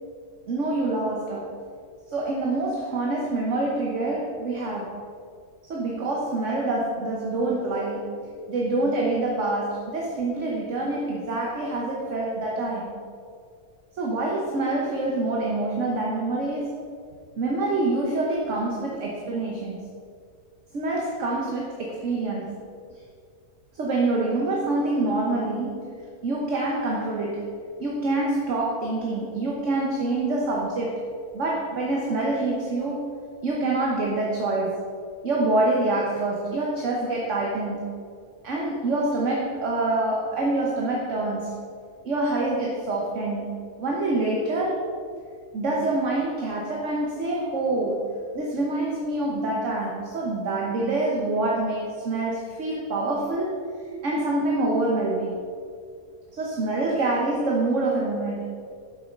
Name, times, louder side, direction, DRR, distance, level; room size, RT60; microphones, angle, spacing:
voice 1, 0.5-1.5 2.1-5.0 5.7-13.0 14.0-16.8 17.4-19.8 20.7-22.7 23.7-27.5 27.8-31.1 31.3-33.1 33.4-34.8 35.2-37.9 38.4-41.6 42.0-44.8 45.5-53.6 54.0-55.4 56.3-58.6, right 2 dB, 55° right, -2 dB, 1.4 m, -26 dB
7.8 x 7.6 x 5.2 m, 2.2 s
omnidirectional pair, 1.6 m